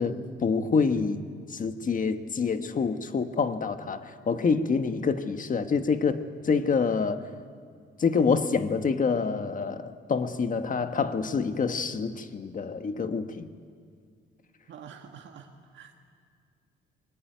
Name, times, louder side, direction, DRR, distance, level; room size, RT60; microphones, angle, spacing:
voice 1, 0.0-7.3 8.0-13.5, left 5 dB, 40° left, 9 dB, 1.5 m, -27 dB
voice 2, 14.7-15.9, right 7 dB, 70° right, 2 dB, 1.9 m, -47 dB
23.0 x 19.5 x 9.5 m, 2.2 s
cardioid pair, 90°, 20 cm